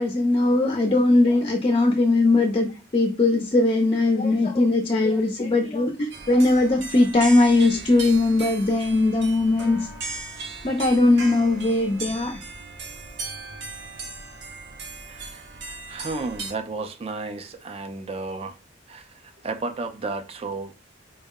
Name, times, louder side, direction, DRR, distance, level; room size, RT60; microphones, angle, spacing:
voice 1, 0.0-9.9 10.6-12.4, left 2 dB, 30° left, 0.4 m, -20 dB
sound 1, 6.1-16.5, right 3 dB, 65° right, 0.8 m, -37 dB
voice 2, 15.1-18.6 18.9-20.7, right 3 dB, 30° right, 0.4 m, -33 dB
4.4 x 2.0 x 3.6 m
head